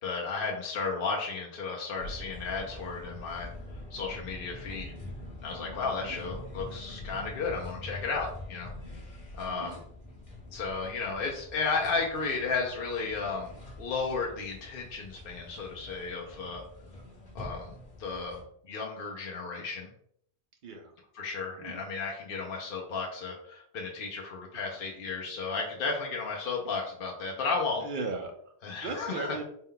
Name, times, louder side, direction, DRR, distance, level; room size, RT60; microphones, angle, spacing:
voice 1, 0.0-3.5 3.9-4.9 5.4-8.7 9.3-9.8 10.5-13.5 13.8-16.6 17.3-18.4 18.6-19.9 21.2-27.8 28.6-29.3, left 4 dB, 60° left, -1 dB, 0.8 m, -33 dB
sound 1, 2.0-18.4, left 1 dB, 40° left, 1.2 m, -45 dB
voice 2, 9.5-9.8 20.6-20.9 21.6-21.8 24.7-24.8 27.8-28.5 28.8-29.4, right 3 dB, 55° right, 4 dB, 0.7 m, -37 dB
4.2 x 2.2 x 3.7 m, 0.67 s
omnidirectional pair, 1.2 m